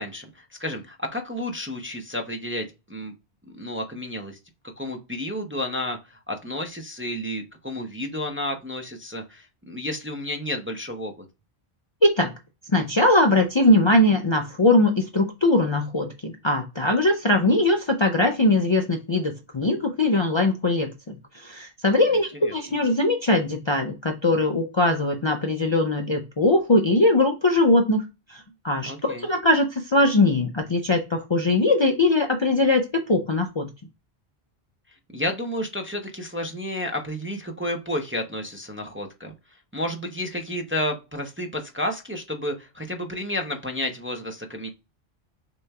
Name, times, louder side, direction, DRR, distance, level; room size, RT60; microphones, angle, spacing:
voice 1, 0.0-3.1 3.6-4.4 4.8-11.2 22.4-22.5 28.8-29.3 35.1-39.3 39.7-44.7, left 1 dB, 15° right, 3 dB, 0.5 m, -31 dB
voice 2, 12.0-12.3 12.7-33.7, left 2 dB, 35° left, 3 dB, 0.5 m, -21 dB
6.3 x 3.0 x 2.3 m, 0.26 s
omnidirectional pair, 1.0 m